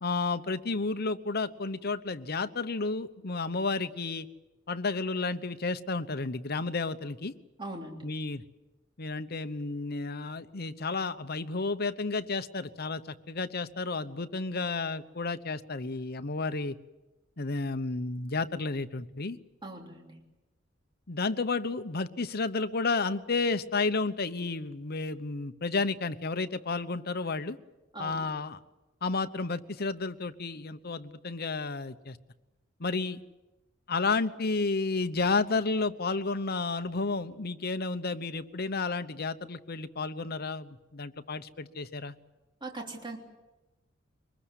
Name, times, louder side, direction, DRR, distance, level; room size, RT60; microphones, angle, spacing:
voice 1, 0.0-4.3 4.7-7.3 8.0-8.4 9.0-16.8 17.4-19.4 21.1-27.6 28.0-28.6 29.0-32.2 32.8-33.2 33.9-42.1, left 3 dB, 55° left, 11 dB, 1.0 m, -31 dB
voice 2, 7.6-8.1 19.6-20.2 27.9-28.3 42.6-43.2, right 2 dB, 25° right, 1 dB, 3.2 m, -40 dB
24.0 x 20.5 x 8.3 m, 1.0 s
head